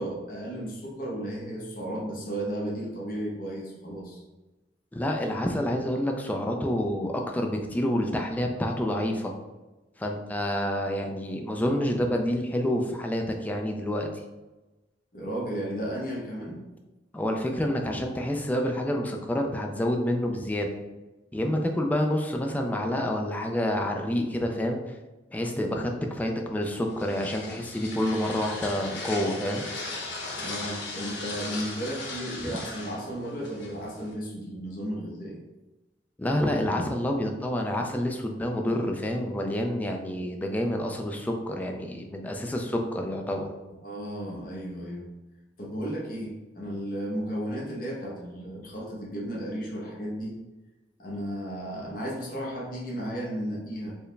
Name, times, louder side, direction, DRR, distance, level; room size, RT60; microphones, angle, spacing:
voice 1, 0.0-4.2 15.1-16.6 30.4-35.4 43.8-45.1 45.6-50.4 51.0-54.0, equal, 50° left, -3 dB, 0.8 m, -34 dB
voice 2, 4.9-9.3 10.0-14.1 17.1-20.7 21.3-24.8 25.3-29.6 36.2-43.5, left 1 dB, 10° left, 2 dB, 0.3 m, -28 dB
sound 1, 26.6-34.1, left 3 dB, 90° left, 0.8 m, -38 dB
4.5 x 2.1 x 3.2 m, 1.1 s
head